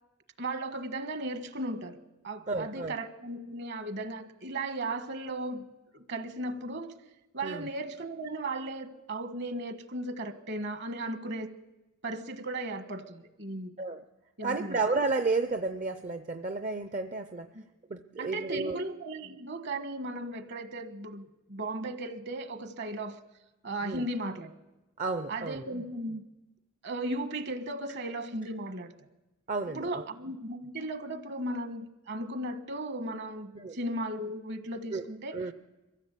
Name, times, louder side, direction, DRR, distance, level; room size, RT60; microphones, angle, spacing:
voice 1, 0.4-5.7 5.9-7.0 7.3-11.6 12.0-13.8 14.4-14.8 17.5-17.6 18.2-23.2 23.6-24.5 25.3-26.2 26.8-28.9 29.7-35.4, right 1 dB, 55° right, 10 dB, 1.4 m, -36 dB
voice 2, 2.5-2.9 7.4-7.7 13.8-14.0 14.4-17.5 17.9-18.8 23.8-24.0 25.0-25.6 29.5-30.0 33.5-33.8 34.9-35.1 35.3-35.5, right 3 dB, 35° right, 9 dB, 0.6 m, -32 dB
23.5 x 15.0 x 8.4 m, 1.1 s
head